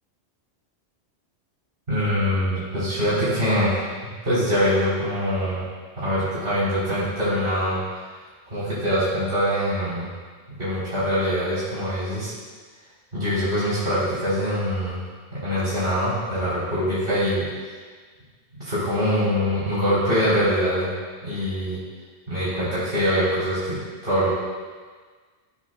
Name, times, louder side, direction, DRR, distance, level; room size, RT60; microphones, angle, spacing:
voice 1, 1.9-3.8 4.2-5.7 6.0-8.0 8.5-10.1 10.6-12.3 13.1-15.0 15.3-17.5 18.5-20.9 21.2-21.8 22.3-24.3, equal, 60° right, -10 dB, 3.8 m, -23 dB
15.0 x 13.5 x 2.2 m, 1.5 s
omnidirectional pair, 1.1 m